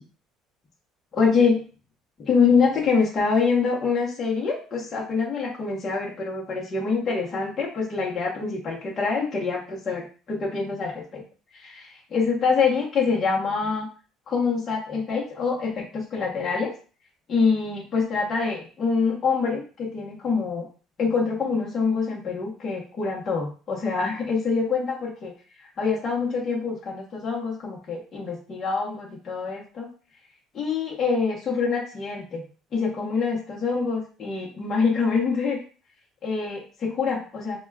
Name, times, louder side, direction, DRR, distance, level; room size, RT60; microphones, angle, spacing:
voice 1, 1.1-1.6 2.2-11.2 11.5-13.9 14.3-16.7 17.3-20.7 21.0-25.3 25.6-29.9 30.5-32.5 32.7-35.6 36.2-37.6, left 5 dB, 30° left, -5 dB, 0.9 m, -25 dB
4.8 x 2.3 x 2.3 m, 0.37 s
cardioid pair, 165°, 0 cm